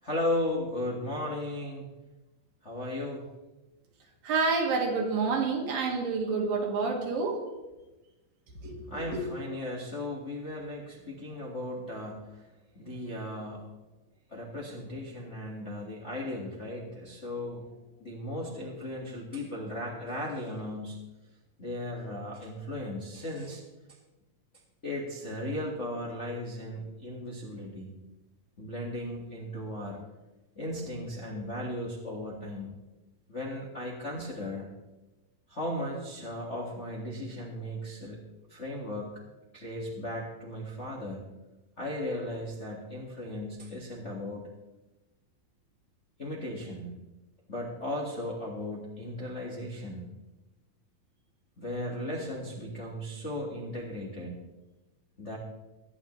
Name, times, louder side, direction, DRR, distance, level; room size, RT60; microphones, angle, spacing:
voice 1, 0.0-1.9 2.6-3.3 8.9-13.7 14.3-17.7 18.0-21.0 21.6-23.6 24.8-27.9 28.6-30.0 30.5-32.7 33.3-34.7 35.5-38.2 38.5-39.2 39.5-41.2 41.8-44.5 46.2-46.9 47.5-50.1 51.6-54.4 55.2-55.4, left 1 dB, 40° left, -3 dB, 1.0 m, -36 dB
voice 2, 4.2-7.4 8.6-9.2, right 4 dB, 75° right, 0 dB, 3.6 m, -28 dB
22.0 x 9.7 x 3.2 m, 1.1 s
omnidirectional pair, 4.2 m